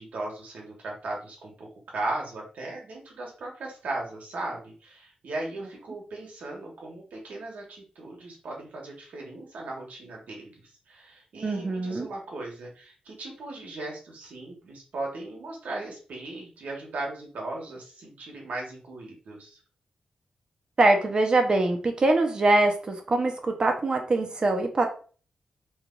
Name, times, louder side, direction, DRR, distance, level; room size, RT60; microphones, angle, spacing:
voice 1, 0.0-10.5 10.9-19.6, right 2 dB, 85° right, -1 dB, 1.1 m, -37 dB
voice 2, 11.4-12.1 20.8-24.9, right 2 dB, 35° right, 4 dB, 0.5 m, -23 dB
3.1 x 2.3 x 3.7 m, 0.39 s
wide cardioid pair, 160°, 3 cm